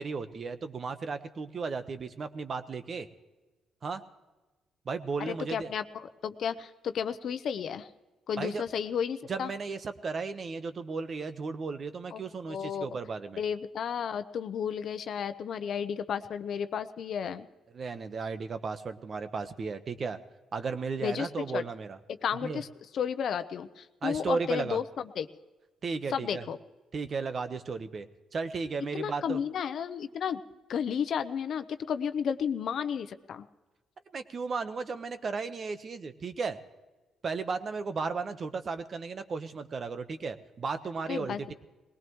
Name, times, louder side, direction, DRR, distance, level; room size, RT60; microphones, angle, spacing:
voice 1, 0.0-3.1 3.8-4.0 4.8-5.7 8.4-8.6 9.3-13.4 17.7-20.2 20.5-22.0 22.4-22.6 24.0-24.8 25.8-26.4 26.9-28.1 28.3-29.4 34.1-36.6 37.2-41.5, right 4 dB, 45° right, 9 dB, 1.1 m, -35 dB
voice 2, 5.2-7.9 8.3-9.5 12.1-12.2 12.5-12.9 13.4-17.5 21.0-21.6 22.2-22.7 22.9-25.3 26.1-26.6 28.9-30.4 30.7-33.5 41.1-41.5, left 7 dB, 65° left, 11 dB, 0.8 m, -33 dB
21.0 x 18.5 x 3.1 m, 1.2 s
cardioid pair, 90°, 0 cm